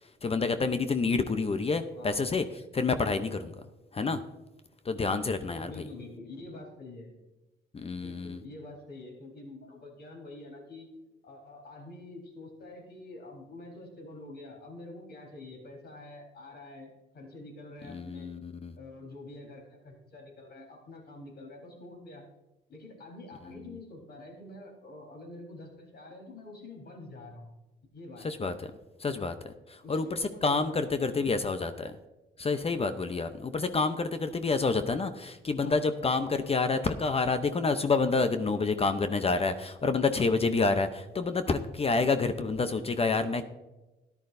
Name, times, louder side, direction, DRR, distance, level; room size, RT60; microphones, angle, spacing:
voice 1, 0.2-2.4 2.7-3.5 3.9-4.2 4.8-5.7 7.7-8.4 17.9-18.7 23.5-23.6 28.2-28.7 29.0-31.9 32.4-43.4, left 4 dB, 30° left, 10 dB, 0.7 m, -28 dB
voice 2, 1.9-2.3 5.6-7.1 7.9-10.9 11.2-18.3 18.8-22.3 22.7-27.5 27.9-28.3 29.8-31.8 35.6-35.8, left 2 dB, 55° left, 1 dB, 4.2 m, -47 dB
13.5 x 11.0 x 2.6 m, 1.1 s
cardioid pair, 90°, 20 cm